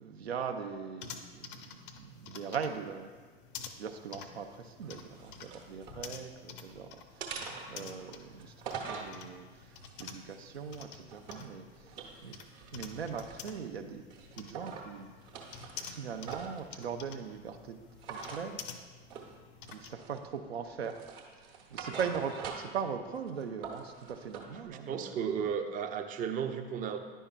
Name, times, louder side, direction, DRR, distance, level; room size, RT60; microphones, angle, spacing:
voice 1, 0.0-3.1 3.6-12.4 12.7-14.0 14.3-15.1 15.8-17.8 18.1-18.9 19.7-21.0 21.7-25.2, right 6 dB, 80° right, 6 dB, 0.5 m, -40 dB
sound 1, 1.0-19.9, left 7 dB, 60° left, 0.6 m, -49 dB
sound 2, 4.8-6.0 6.4-6.8 7.2-9.1 9.7-11.5 11.9-13.7 14.1-14.9 15.2-16.6 18.0-18.5 19.1-19.3 19.7-20.4 20.8-22.8 23.2-24.5, right 5 dB, 55° right, 0.9 m, -44 dB
voice 2, 24.6-27.0, right 7 dB, 25° right, 6 dB, 0.5 m, -34 dB
10.0 x 5.4 x 2.2 m, 1.4 s
figure-of-eight pair, 70°, 31 cm